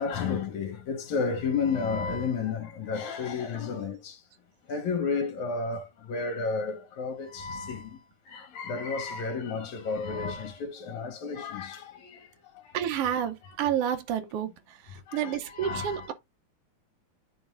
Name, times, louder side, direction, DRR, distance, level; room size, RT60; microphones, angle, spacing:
voice 1, 0.0-4.2 4.7-7.9 8.3-12.1 13.4-13.8 14.2-14.3 15.1-16.1, left 5 dB, 70° left, 2.6 m, -32 dB
voice 2, 12.7-14.5 15.1-16.1, right 9 dB, 85° right, 1.3 m, -29 dB
11.5 x 3.9 x 2.5 m
omnidirectional pair, 3.6 m